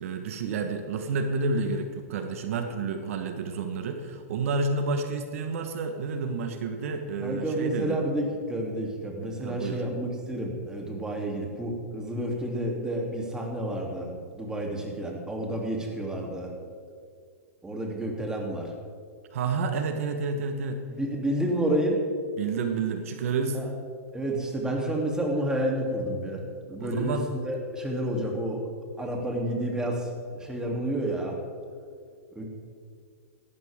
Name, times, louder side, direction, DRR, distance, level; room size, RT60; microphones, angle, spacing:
voice 1, 0.0-8.0 9.4-9.8 19.3-20.8 22.4-23.6 26.8-27.3, right 4 dB, 65° right, 6 dB, 1.3 m, -30 dB
voice 2, 7.2-16.5 17.6-18.7 20.9-22.0 23.5-23.7 24.1-26.4 26.7-28.7 29.0-31.4 32.3-32.4, right 1 dB, 10° right, 0 dB, 3.0 m, -30 dB
18.0 x 13.0 x 3.7 m, 2.2 s
hypercardioid pair, 125°, 8 cm